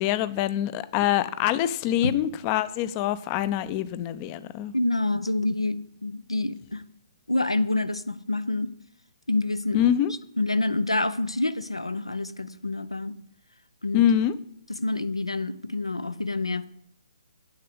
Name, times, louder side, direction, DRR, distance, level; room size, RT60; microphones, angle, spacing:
voice 1, 0.0-4.7 9.7-10.1 13.9-14.3, left 11 dB, 25° left, 16 dB, 0.5 m, -25 dB
voice 2, 4.7-6.8 7.3-8.7 9.3-9.9 10.4-13.1 13.8-14.0 14.8-16.6, left 2 dB, 80° left, 14 dB, 0.6 m, -27 dB
8.5 x 6.6 x 7.8 m, 0.72 s
figure-of-eight pair, 130°, 3 cm